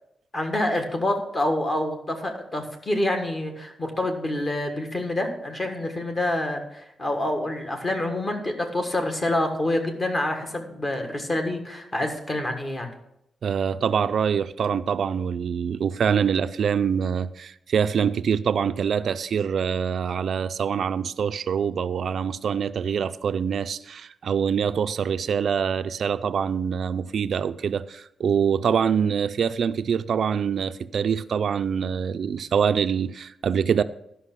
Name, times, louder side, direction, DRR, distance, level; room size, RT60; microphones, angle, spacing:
voice 1, 0.3-12.9, left 1 dB, 30° left, 1.5 m, -27 dB
voice 2, 13.4-33.8, right 7 dB, 60° right, 0.3 m, -25 dB
11.5 x 5.7 x 6.0 m
wide cardioid pair, 155°, 0 cm